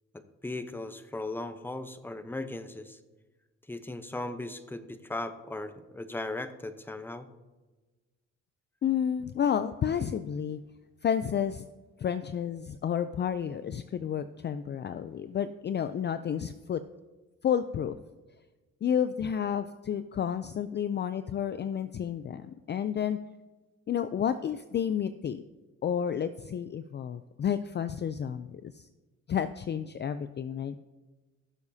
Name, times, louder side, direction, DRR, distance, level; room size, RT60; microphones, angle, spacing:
voice 1, 0.1-3.0 3.7-7.3, left 2 dB, 5° left, 10 dB, 0.8 m, -37 dB
voice 2, 8.8-10.6 11.0-11.7 12.0-16.8 17.4-18.0 18.8-23.2 23.9-25.4 25.8-28.9 29.3-30.8, left 8 dB, 35° left, 12 dB, 0.4 m, -31 dB
16.0 x 7.1 x 2.7 m, 1.2 s
cardioid pair, 90°, 30 cm